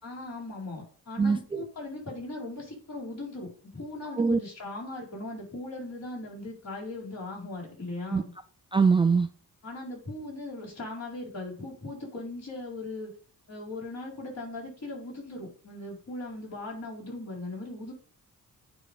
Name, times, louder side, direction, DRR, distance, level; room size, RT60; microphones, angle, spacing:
voice 1, 0.0-8.3 9.6-13.1 13.5-17.9, left 2 dB, 50° left, -4 dB, 4.5 m, -39 dB
voice 2, 1.2-1.6 4.2-4.4 8.1-8.2 8.7-9.3, right 5 dB, 15° right, 9 dB, 0.3 m, -22 dB
9.6 x 3.6 x 5.2 m, 0.43 s
cardioid pair, 105°, 35 cm